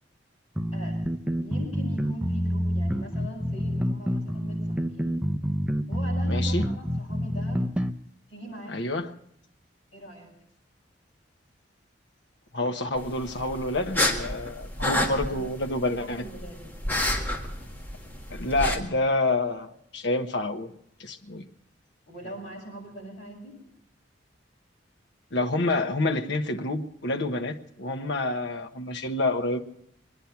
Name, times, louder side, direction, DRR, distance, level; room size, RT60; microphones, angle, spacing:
sound 1, 0.6-7.9, equal, 5° right, 0.6 m, -27 dB
voice 1, 1.4-5.1 5.9-7.7 8.3-8.9 9.9-10.3 14.8-15.5 16.0-16.7 22.1-23.6, equal, 35° left, 7.2 m, -41 dB
voice 2, 6.3-6.6 8.7-9.1 12.5-16.2 18.3-20.7 21.0-21.4 25.3-29.6, left 2 dB, 70° left, 1.2 m, -28 dB
sound 2, 13.0-18.8, left 1 dB, 10° left, 1.9 m, -30 dB
23.5 x 10.0 x 5.8 m
head